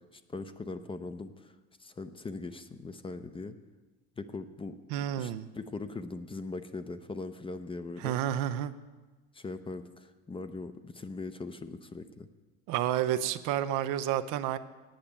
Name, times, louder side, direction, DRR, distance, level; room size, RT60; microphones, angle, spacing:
voice 1, 0.3-1.5 1.8-3.6 4.2-4.8 5.2-8.2 9.3-12.3, left 3 dB, 15° left, 10 dB, 0.6 m, -40 dB
voice 2, 4.9-5.5 8.0-8.7 12.7-14.6, right 11 dB, 65° right, 10 dB, 0.7 m, -30 dB
8.9 x 6.8 x 8.7 m, 1.2 s
supercardioid pair, 85°, 33 cm